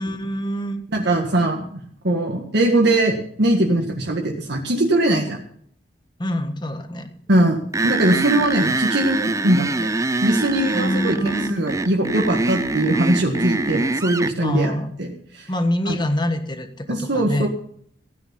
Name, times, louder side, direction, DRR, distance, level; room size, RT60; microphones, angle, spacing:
voice 1, 0.0-0.8 6.2-7.1 10.7-11.7 14.4-14.9 15.5-17.5, left 1 dB, 25° left, 8 dB, 1.5 m, -25 dB
voice 2, 0.9-5.4 7.3-9.9 10.2-14.7 15.0-15.5 15.8-16.0 16.9-17.5, right 1 dB, 65° right, 0 dB, 1.8 m, -21 dB
sound 1, 7.7-14.3, right 2 dB, 15° right, 0.5 m, -24 dB
16.0 x 9.6 x 5.7 m, 0.63 s
head